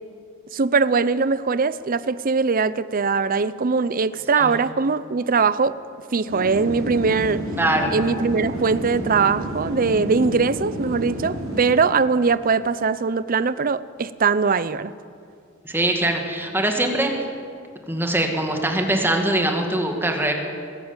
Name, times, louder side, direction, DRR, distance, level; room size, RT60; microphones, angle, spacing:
voice 1, 0.5-5.8 6.1-7.4 7.9-14.9, right 4 dB, 45° right, 16 dB, 0.6 m, -21 dB
sound 1, 6.3-11.7, equal, 75° right, 5.1 m, -30 dB
voice 2, 7.6-7.9 15.6-17.1 17.9-20.3, right 1 dB, 10° right, 3 dB, 2.2 m, -22 dB
21.5 x 14.0 x 9.0 m, 2.3 s
head